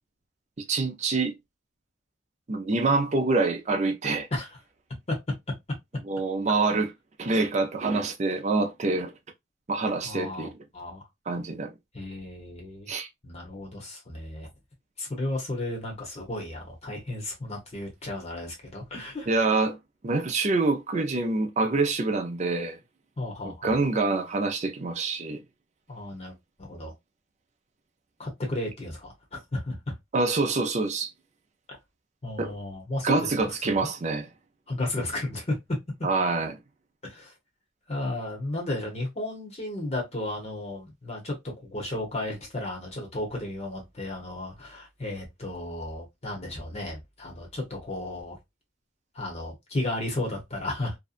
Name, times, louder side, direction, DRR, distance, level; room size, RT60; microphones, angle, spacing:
voice 1, 0.7-1.3 2.5-4.3 6.1-6.9 7.2-9.1 9.7-10.6 11.3-11.7 12.9-13.1 19.3-19.8 20.0-22.8 23.6-25.4 30.1-31.1 32.4-32.5 33.0-34.3 36.0-36.6, right 3 dB, 35° right, 0.5 m, -26 dB
voice 2, 10.0-11.0 11.9-12.9 13.2-14.5 15.0-19.3 23.2-23.7 25.9-26.9 28.2-29.9 32.2-33.9 34.7-35.8 37.0-37.3 37.9-48.4 49.1-51.0, left 1 dB, 35° left, 0.9 m, -34 dB
2.6 x 2.2 x 2.4 m
head